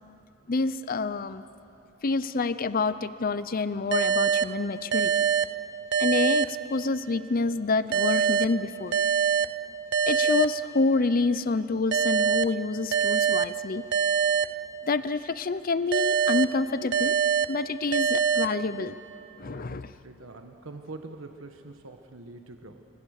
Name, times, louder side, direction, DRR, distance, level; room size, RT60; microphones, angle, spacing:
voice 1, 0.5-1.4 2.0-5.1 6.0-9.0 10.1-13.8 14.8-17.1 17.5-18.9 19.4-19.9, left 3 dB, 45° left, 14 dB, 0.6 m, -27 dB
sound 1, 3.9-7.2 7.9-11.2 11.9-15.2 15.9-19.2, right 7 dB, 55° right, 0.5 m, -26 dB
voice 2, 19.7-22.8, right 2 dB, 85° right, 5 dB, 1.3 m, -44 dB
25.5 x 24.5 x 6.6 m, 2.9 s
head